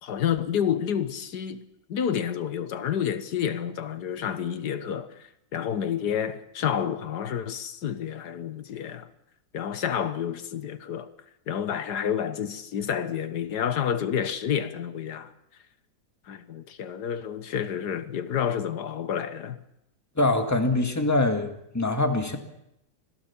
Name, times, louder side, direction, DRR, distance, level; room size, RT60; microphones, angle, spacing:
voice 1, 0.0-1.6 1.9-5.1 5.5-9.1 9.5-11.1 11.5-15.3 16.3-19.6, left 8 dB, 90° left, 1.7 m, -29 dB
voice 2, 20.2-22.4, left 2 dB, 10° left, 1.8 m, -24 dB
26.0 x 17.0 x 7.2 m
omnidirectional pair, 1.7 m